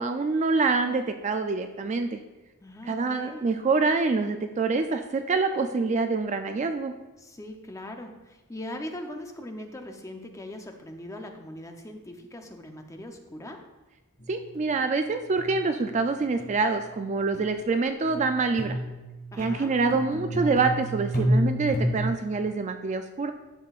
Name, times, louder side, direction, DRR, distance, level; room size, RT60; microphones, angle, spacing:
voice 1, 0.0-2.2 2.9-6.9 14.3-18.8 19.4-23.3, right 4 dB, 30° right, 7 dB, 0.3 m, -26 dB
voice 2, 2.6-3.5 7.2-13.6 19.3-19.7, left 1 dB, 15° left, 4 dB, 0.6 m, -40 dB
sound 1, 14.2-14.8 15.0-15.1 15.4-15.7 16.4-16.7 17.3-17.5 18.1-22.0, equal, 45° left, 1.5 m, -30 dB
11.0 x 6.7 x 2.4 m, 1.1 s
head